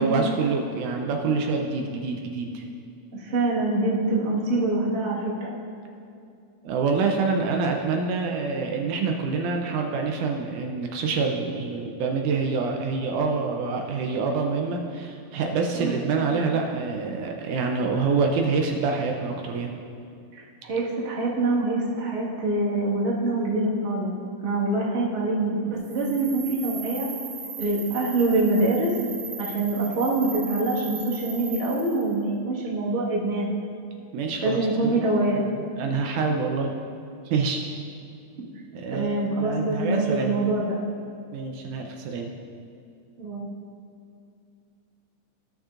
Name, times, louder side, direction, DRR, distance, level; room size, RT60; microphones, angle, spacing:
voice 1, 0.0-2.6 6.6-19.7 34.1-34.6 34.8-35.1 35.4-36.7 37.3-37.6 38.7-40.4 41.3-42.3, right 4 dB, 80° right, 2 dB, 2.0 m, -26 dB
voice 2, 3.1-5.5 15.7-16.1 20.3-24.2 24.4-27.1 27.6-28.9 29.4-33.5 34.4-35.4 38.9-40.8 43.2-43.5, right 2 dB, 35° right, -6 dB, 1.2 m, -25 dB
sound 1, 25.8-32.1, right 5 dB, 60° right, 1.6 m, -38 dB
17.0 x 6.4 x 2.5 m, 2.4 s
omnidirectional pair, 3.8 m